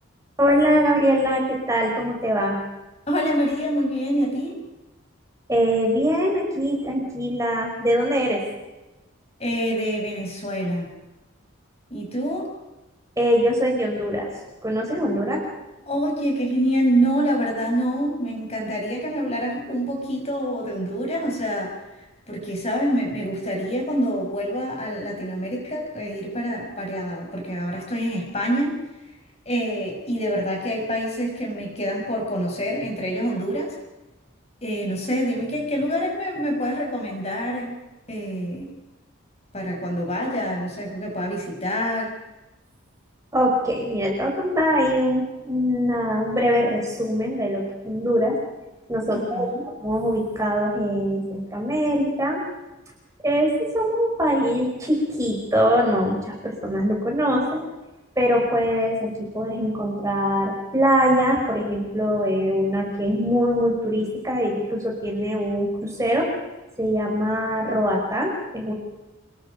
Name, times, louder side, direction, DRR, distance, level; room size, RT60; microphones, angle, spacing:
voice 1, 0.4-2.6 5.5-8.4 13.2-14.3 14.6-15.4 43.3-48.4 48.9-49.5 49.8-52.4 53.2-57.6 58.2-66.3 66.8-68.7, equal, 15° right, -1 dB, 5.2 m, -22 dB
voice 2, 3.1-4.6 9.4-10.9 11.9-12.5 15.9-28.8 29.5-33.7 34.6-37.8 38.1-38.7 39.5-42.1 49.1-49.6, equal, 30° left, 1 dB, 6.1 m, -26 dB
28.0 x 22.0 x 5.3 m, 1.0 s
head